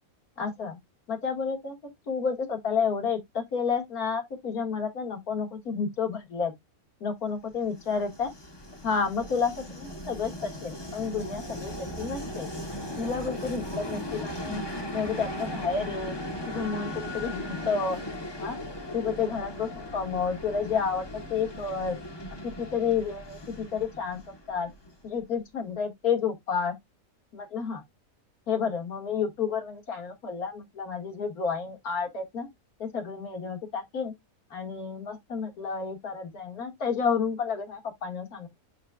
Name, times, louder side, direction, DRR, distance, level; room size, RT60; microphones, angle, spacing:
voice 1, 0.4-0.8 1.1-1.7 2.1-6.5 7.0-8.3 8.8-12.5 13.0-14.6 14.9-16.1 16.5-18.0 18.4-18.6 18.9-22.0 22.4-24.2 24.5-24.7 25.0-26.7 27.3-27.8 28.5-32.5 32.8-34.1 34.5-38.5, left 6 dB, 85° left, 2.7 m, -30 dB
Train, 7.5-25.2, left 1 dB, 20° left, 1.3 m, -38 dB
10.5 x 4.3 x 2.4 m
omnidirectional pair, 1.5 m